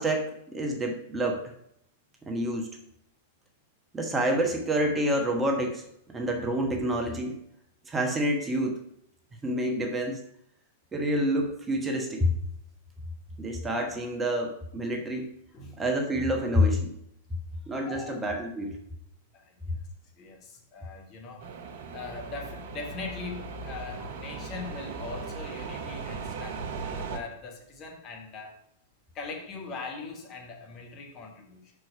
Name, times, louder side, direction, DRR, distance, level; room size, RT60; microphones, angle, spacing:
voice 1, 0.0-1.5 2.3-2.7 3.9-7.4 7.9-8.8 9.4-10.2 10.9-12.4 13.4-15.3 15.8-16.9 17.7-18.8, equal, 15° right, 2 dB, 1.2 m, -28 dB
voice 2, 17.8-18.2 19.3-19.8 20.2-21.5 21.9-28.6 29.1-31.7, left 4 dB, 35° left, 2 dB, 1.5 m, -41 dB
sound 1, 21.4-27.2, right 4 dB, 55° right, 0.9 m, -38 dB
6.2 x 4.8 x 5.5 m, 0.72 s
figure-of-eight pair, 100°, 0 cm